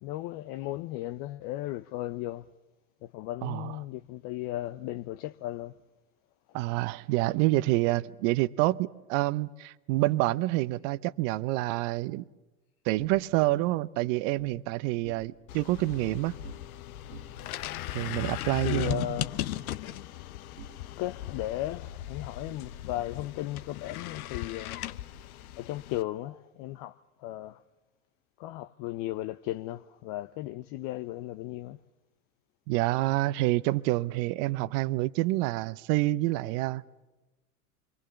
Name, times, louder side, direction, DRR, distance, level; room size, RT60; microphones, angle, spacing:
voice 1, 0.0-2.5 3.0-5.7 18.6-19.4 21.0-24.8 25.6-27.6 28.4-31.8, left 15 dB, 50° left, 0.7 m, -36 dB
voice 2, 3.4-3.8 6.5-12.2 12.8-16.3 17.9-19.2 32.7-36.8, right 18 dB, 55° right, 0.9 m, -27 dB
sound 1, 13.0-14.6 14.9-15.6 15.9-16.8 17.1-18.9 19.2-21.3, right 2 dB, 85° right, 3.0 m, -51 dB
sound 2, 15.5-26.0, left 14 dB, 70° left, 1.0 m, -38 dB
26.5 x 23.5 x 7.0 m
hypercardioid pair, 85°, 44 cm